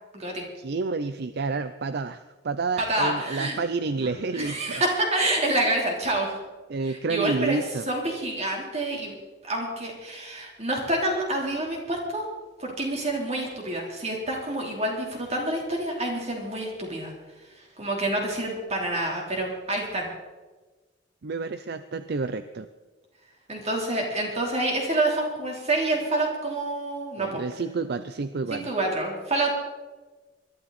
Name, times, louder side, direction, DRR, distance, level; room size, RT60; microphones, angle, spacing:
voice 1, 0.6-4.8 6.7-7.8 21.2-22.7 27.2-28.7, right 4 dB, 60° right, 12 dB, 0.5 m, -29 dB
voice 2, 2.9-3.6 4.0-4.1 4.3-6.4 6.9-7.6 7.9-9.1 9.4-12.2 12.6-17.1 17.8-20.1 23.5-27.4 28.5-29.5, right 2 dB, 35° right, 0 dB, 3.7 m, -27 dB
21.0 x 12.5 x 4.2 m, 1.3 s
head